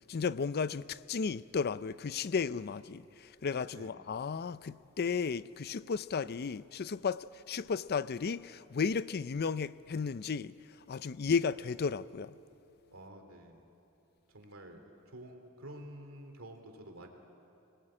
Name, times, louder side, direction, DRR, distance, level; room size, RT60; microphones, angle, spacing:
voice 1, 0.1-10.5 10.9-12.3, left 5 dB, 50° left, 0.5 m, -34 dB
voice 2, 3.7-4.1 12.9-13.7 14.3-14.8 15.1-17.1, right 1 dB, 70° right, 3.0 m, -49 dB
25.5 x 19.5 x 8.7 m
head